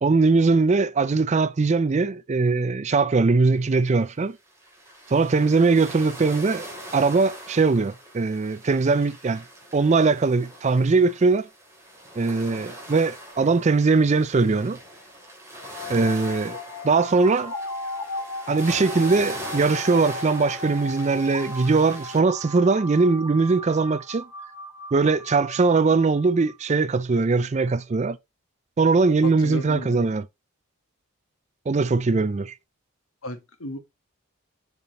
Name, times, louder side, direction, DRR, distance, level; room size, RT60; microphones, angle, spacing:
voice 1, 0.0-4.4 5.1-6.7 6.9-9.4 9.7-11.5 12.2-14.8 15.9-16.6 16.8-17.5 18.5-24.2 24.9-28.2 28.8-30.2 31.7-32.5, right 4 dB, 35° right, 0.4 m, -21 dB
sound 1, 4.0-4.1 4.5-22.2, right 1 dB, 15° right, 3.1 m, -41 dB
sound 2, 15.6-26.5, left 2 dB, 90° left, 2.0 m, -36 dB
voice 2, 29.2-30.0 33.2-33.8, left 1 dB, 75° left, 1.5 m, -34 dB
7.1 x 5.7 x 3.0 m
head